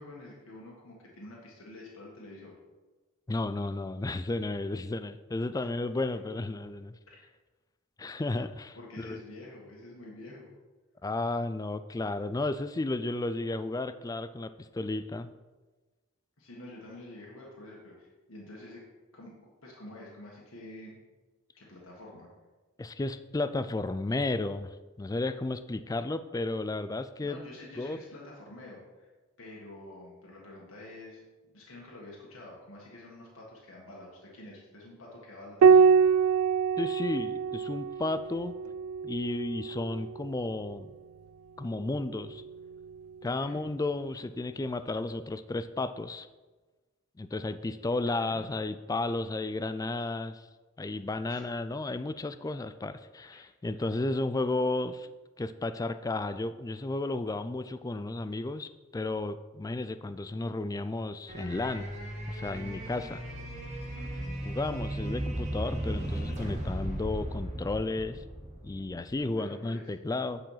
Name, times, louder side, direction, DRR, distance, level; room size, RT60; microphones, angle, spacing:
voice 1, 0.0-2.6 7.1-7.2 8.8-10.5 16.4-18.8 19.1-19.4 19.6-21.0 21.6-22.3 27.2-29.1 29.4-31.2 31.5-35.9 43.2-43.6 47.9-48.5 51.3-51.4 53.3-53.4 64.0-64.4 69.2-69.8, left 1 dB, 75° left, -4 dB, 1.7 m, -48 dB
voice 2, 3.3-7.0 8.0-9.2 11.0-15.3 22.8-27.4 27.8-28.0 36.8-38.5 39.0-40.9 41.6-42.4 43.2-46.3 47.2-50.4 50.8-55.1 55.4-61.9 62.3-63.2 64.4-68.2 68.6-70.4, left 2 dB, 15° left, 12 dB, 0.3 m, -33 dB
Piano, 35.6-40.5 42.1-42.9, right 6 dB, 85° right, 0.3 m, -25 dB
sound 1, 61.3-69.1, right 1 dB, 35° right, 1.9 m, -36 dB
9.1 x 5.0 x 5.6 m, 1.2 s
head